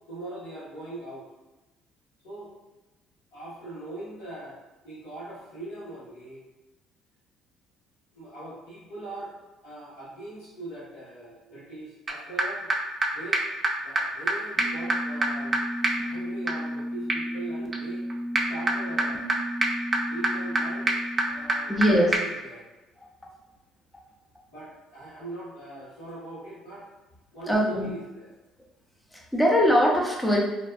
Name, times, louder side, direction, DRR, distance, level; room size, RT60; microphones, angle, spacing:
voice 1, 0.1-1.2 2.2-2.5 3.3-4.6 4.8-6.4 8.1-9.3 9.6-12.7 13.1-13.4 13.8-15.5 16.0-18.0 18.5-19.4 20.1-20.9 21.2-22.7 24.5-26.9 27.3-28.3, right 2 dB, 80° left, -10 dB, 1.1 m, -41 dB
sound 1, 12.1-12.2 12.4-12.5 12.7-12.8 13.0-13.1 13.3-13.4 13.6-13.7 14.0-14.1 14.3-14.4 14.6-21.9 22.1-22.2, right 2 dB, 35° right, 0.5 m, -27 dB
voice 2, 21.7-22.1 27.5-27.9 29.1-30.4, equal, 5° left, -1 dB, 0.6 m, -21 dB
2.6 x 2.2 x 2.3 m, 1.1 s
hypercardioid pair, 65°, 0 cm